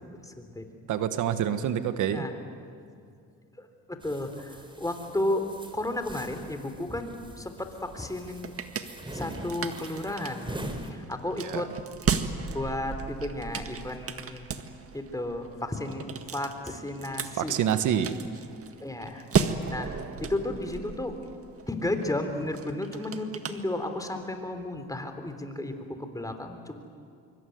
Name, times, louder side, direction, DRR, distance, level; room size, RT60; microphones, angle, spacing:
voice 1, 0.2-0.6 2.1-2.4 3.6-5.5 5.7-8.5 9.1-10.4 10.9-11.7 12.5-14.5 14.9-16.1 16.3-17.6 18.8-19.9 20.2-21.1 21.7-26.8, left 1 dB, 10° left, 6 dB, 3.6 m, -33 dB
voice 2, 0.9-2.2 11.4-11.6 17.3-18.1, right 9 dB, 80° right, 10 dB, 1.5 m, -27 dB
sound 1, 4.0-10.9, right 1 dB, 15° right, 3.8 m, -43 dB
sound 2, 8.0-24.3, right 6 dB, 50° right, 1.8 m, -35 dB
25.0 x 24.5 x 9.5 m, 2.4 s
cardioid pair, 90°, 30 cm